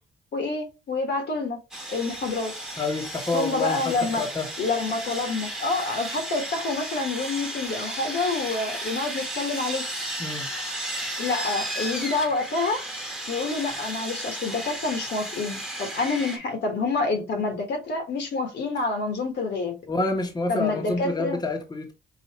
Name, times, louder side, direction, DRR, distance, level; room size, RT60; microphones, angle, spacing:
voice 1, 0.3-1.6 1.9-2.5 3.3-4.3 4.6-9.8 11.2-12.8 13.3-19.8 20.5-21.4, left 3 dB, 60° left, 1.4 m, -27 dB
Sawing, 1.7-16.4, right 1 dB, 5° right, 1.1 m, -34 dB
voice 2, 2.8-4.5 10.2-10.5 19.9-21.9, left 3 dB, 20° left, 1.0 m, -28 dB
5.5 x 2.6 x 2.9 m
cardioid pair, 90°, 20 cm